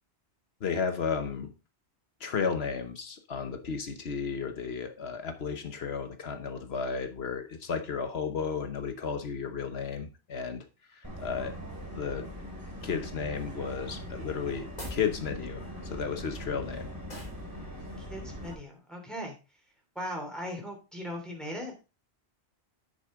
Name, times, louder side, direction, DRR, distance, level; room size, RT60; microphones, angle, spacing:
voice 1, 0.6-1.5 2.2-10.6 10.9-11.5 11.9-12.3 12.8-16.9 17.1-17.2, left 6 dB, 70° left, 8 dB, 1.2 m, -33 dB
Subway metro underground, 11.0-18.5, equal, 20° right, 2.6 m, -41 dB
sound 1, 14.7-15.1 17.1-17.4, left 1 dB, 40° left, 3.3 m, -41 dB
voice 2, 18.0-19.3 19.9-21.7, equal, ahead, 0 dB, 2.8 m, -38 dB
9.2 x 6.6 x 3.7 m, 0.30 s
omnidirectional pair, 1.1 m